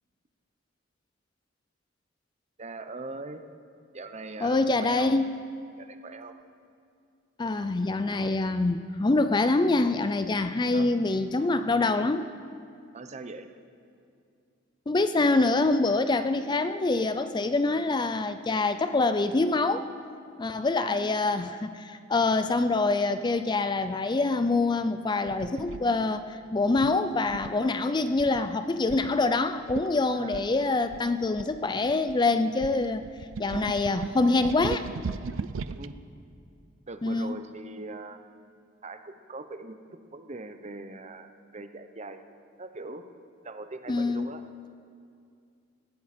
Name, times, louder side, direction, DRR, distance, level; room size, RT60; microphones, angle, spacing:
voice 1, 2.6-3.4 3.9-5.2 5.8-6.4 10.7-10.9 12.9-13.5 20.7-21.1 30.1-30.5 35.8-35.9 36.9-38.2 38.8-39.8 40.1-42.2 42.6-43.0 43.4-44.4, right 3 dB, 35° right, 8 dB, 0.8 m, -41 dB
voice 2, 4.4-5.3 7.4-12.3 14.9-19.9 20.4-33.0 33.4-34.9 37.0-37.4 43.9-44.3, left 3 dB, 25° left, 10 dB, 0.4 m, -25 dB
sound 1, 25.3-25.8 26.8-27.7 28.2-28.5 28.9-29.1 29.4-29.5 29.7-29.9 30.3-32.1 32.6-35.9, right 5 dB, 85° right, 0.5 m, -37 dB
19.5 x 16.0 x 4.3 m, 2.4 s
head